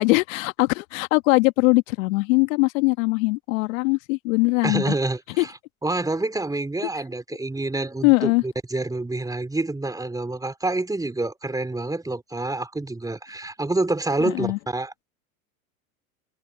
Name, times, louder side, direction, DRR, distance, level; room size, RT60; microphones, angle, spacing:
voice 1, 0.0-4.9 5.4-5.5 8.0-8.4 14.2-14.6, left 26 dB, 60° left, 1.6 m, -21 dB
voice 2, 4.6-5.5 5.8-15.0, right 2 dB, 10° right, 3.8 m, -27 dB
hypercardioid pair, 100°, 44 cm